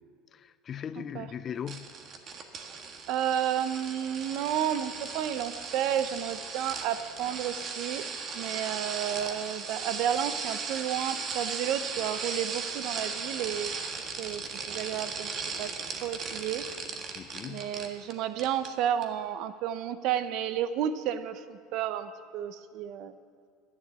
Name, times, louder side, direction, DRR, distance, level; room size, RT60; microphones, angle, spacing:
voice 1, 0.3-1.9 17.1-17.7, left 8 dB, 35° left, 0.4 m, -39 dB
sound 1, 1.7-18.1 18.4-18.7 19.0-19.1, right 5 dB, 40° right, 1.4 m, -37 dB
voice 2, 3.1-8.1 8.3-13.8 14.2-15.7 16.0-16.7 17.5-23.1, right 10 dB, 60° right, 0.6 m, -32 dB
10.5 x 9.8 x 8.2 m
supercardioid pair, 115°, 0 cm